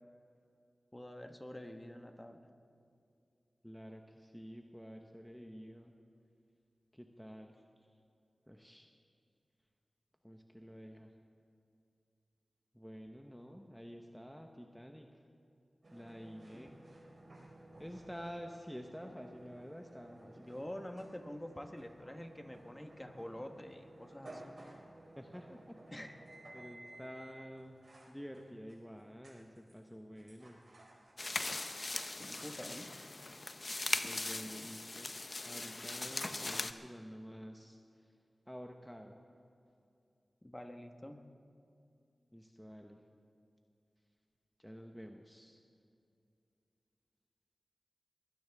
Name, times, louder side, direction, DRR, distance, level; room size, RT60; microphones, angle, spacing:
voice 1, 0.9-2.5 16.5-16.7 20.4-24.7 25.9-26.1 32.2-32.9 34.4-34.7 40.4-41.3, left 1 dB, 20° left, 5 dB, 1.3 m, -47 dB
voice 2, 3.6-5.9 6.9-7.6 8.5-8.9 10.2-11.1 12.7-15.2 15.9-16.8 17.8-20.5 25.2-26.1 26.5-27.8 28.1-30.6 34.0-35.1 35.4-37.8 38.5-39.2 42.3-43.0 44.6-45.6, equal, 5° left, 3 dB, 1.1 m, -49 dB
sound 1, 15.8-34.7, right 1 dB, 60° right, 4.2 m, -57 dB
sound 2, 31.2-36.7, left 2 dB, 45° left, 0.7 m, -39 dB
22.5 x 16.5 x 3.6 m, 2.5 s
cardioid pair, 50°, 0 cm